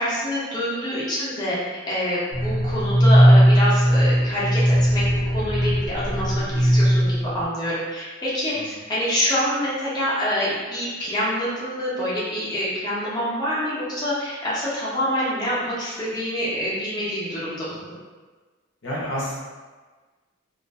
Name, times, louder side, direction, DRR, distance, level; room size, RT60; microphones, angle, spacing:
voice 1, 0.0-1.5 1.9-5.0 5.3-17.7, equal, 20° left, -9 dB, 0.7 m, -26 dB
sound 1, 2.3-7.4, equal, 20° right, 0.6 m, -18 dB
voice 2, 18.8-19.4, equal, 60° left, -6 dB, 0.7 m, -30 dB
2.5 x 2.4 x 2.2 m, 1.4 s
head